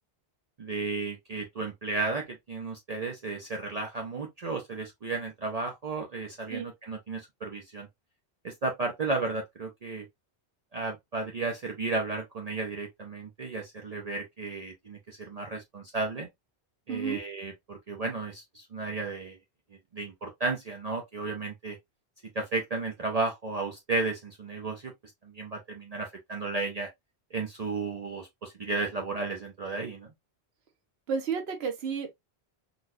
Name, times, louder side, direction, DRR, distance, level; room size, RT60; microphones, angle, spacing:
voice 1, 0.6-7.9 8.4-10.0 10.7-16.3 16.9-19.4 19.9-21.8 22.3-24.9 25.2-26.9 27.3-30.1, right 3 dB, 45° right, 0.6 m, -33 dB
voice 2, 16.9-17.2 31.1-32.1, right 6 dB, 70° right, 1.1 m, -31 dB
4.0 x 2.3 x 2.5 m
omnidirectional pair, 1.1 m